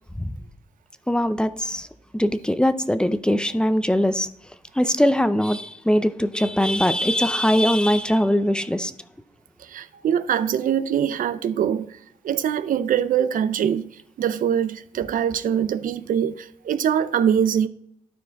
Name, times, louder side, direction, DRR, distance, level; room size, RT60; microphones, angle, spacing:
voice 1, 1.1-1.9 2.1-4.3 4.7-8.9, equal, 5° left, 0.5 m, -21 dB
voice 2, 9.6-12.0 12.2-13.9 14.2-17.7, right 9 dB, 90° right, 0.5 m, -23 dB
12.0 x 4.5 x 3.5 m
cardioid pair, 85°, 14 cm